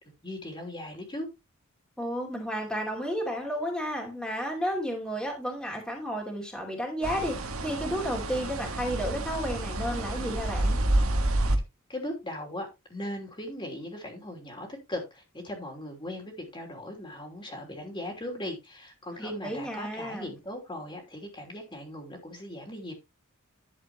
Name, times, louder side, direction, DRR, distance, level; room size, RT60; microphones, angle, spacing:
voice 1, 0.2-1.3 11.9-22.9, left 1 dB, 25° left, 3.0 m, -38 dB
voice 2, 2.0-10.8 19.2-20.3, equal, 5° left, 2.7 m, -32 dB
sound 1, 7.0-11.6, right 1 dB, 85° right, 1.6 m, -29 dB
11.5 x 7.5 x 3.0 m
head